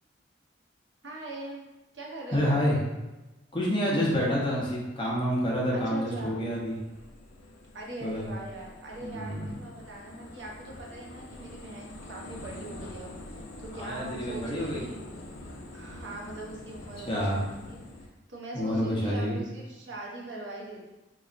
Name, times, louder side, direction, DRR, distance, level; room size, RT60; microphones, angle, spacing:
voice 1, 1.0-1.6 1.9-2.6 5.7-6.4 7.7-15.1 15.7-20.9, right 2 dB, 70° right, -2 dB, 0.8 m, -41 dB
voice 2, 2.3-2.8 3.5-6.7 8.0-8.3 9.0-9.5 13.7-14.8 17.1-17.4 18.5-19.4, equal, 25° left, -5 dB, 0.7 m, -28 dB
sound 1, 6.5-18.1, left 1 dB, 85° left, 0.5 m, -45 dB
4.0 x 3.0 x 2.5 m, 1.1 s
head